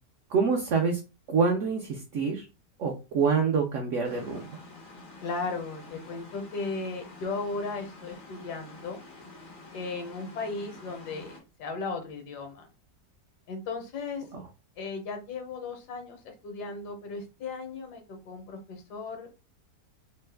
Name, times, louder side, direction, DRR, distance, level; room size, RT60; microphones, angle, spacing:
voice 1, 0.3-1.0 1.3-2.5 2.8-4.5 14.3-14.4, right 5 dB, 70° right, 1 dB, 0.7 m, -26 dB
sound 1, 4.0-11.4, left 3 dB, 55° left, 0.5 m, -48 dB
voice 2, 5.2-9.0 9.7-12.7 13.5-14.3 14.8-19.4, left 3 dB, 75° left, 5 dB, 1.3 m, -36 dB
3.0 x 2.1 x 3.3 m, 0.30 s
omnidirectional pair, 1.8 m